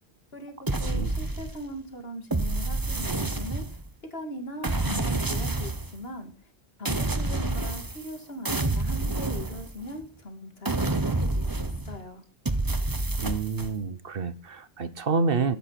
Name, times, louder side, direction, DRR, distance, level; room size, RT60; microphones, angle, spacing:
voice 1, 0.3-3.8 4.1-6.5 6.8-12.2, left 1 dB, 65° left, 5 dB, 2.9 m, -40 dB
sound 1, 0.7-1.8 2.3-3.9 4.6-6.0 6.8-8.2 8.4-10.0 10.6-12.0 12.4-13.7, right 2 dB, 20° right, 1.0 m, -28 dB
voice 2, 13.2-15.6, right 4 dB, 60° right, 14 dB, 1.1 m, -28 dB
12.0 x 9.5 x 5.8 m, 0.34 s
omnidirectional pair, 1.1 m